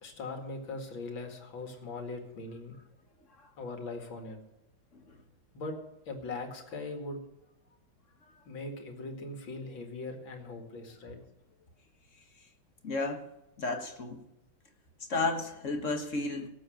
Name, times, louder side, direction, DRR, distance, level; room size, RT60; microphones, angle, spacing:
voice 1, 0.0-2.7 3.6-4.4 5.5-5.8 6.1-7.2 8.5-11.2, left 3 dB, 75° left, 4 dB, 2.8 m, -40 dB
voice 2, 12.8-13.2 13.6-14.2 15.1-16.5, left 3 dB, 40° left, 5 dB, 1.6 m, -32 dB
17.0 x 7.6 x 6.4 m, 0.92 s
omnidirectional pair, 2.2 m